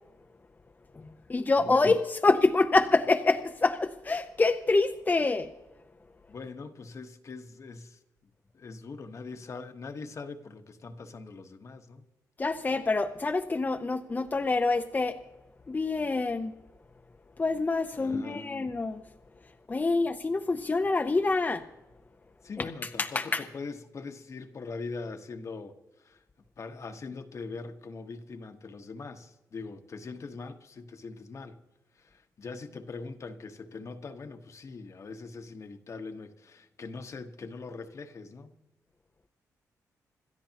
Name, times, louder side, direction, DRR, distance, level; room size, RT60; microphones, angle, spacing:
voice 1, 0.9-5.5 12.4-15.2 15.7-16.5 17.4-19.0 19.7-21.6 22.6-22.7 23.0-23.5, left 3 dB, 30° left, 0.7 m, -26 dB
voice 2, 6.3-8.0 8.5-12.0 17.9-18.5 22.4-26.2 26.6-31.6 32.0-38.5, left 4 dB, 50° left, 1.2 m, -42 dB
27.0 x 13.0 x 2.9 m
cardioid pair, 80°, 6 cm